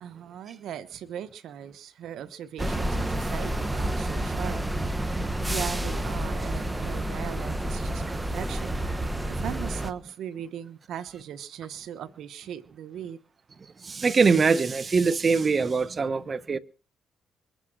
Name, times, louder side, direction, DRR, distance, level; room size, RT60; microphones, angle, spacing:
voice 1, 0.0-4.6 5.5-8.8 9.2-13.2, right 9 dB, 75° right, 1.2 m, -38 dB
sound 1, 2.6-9.9, right 1 dB, 15° right, 1.3 m, -29 dB
voice 2, 13.8-16.6, right 4 dB, 35° right, 1.1 m, -23 dB
23.0 x 8.2 x 6.3 m
cardioid pair, 90°, 0 cm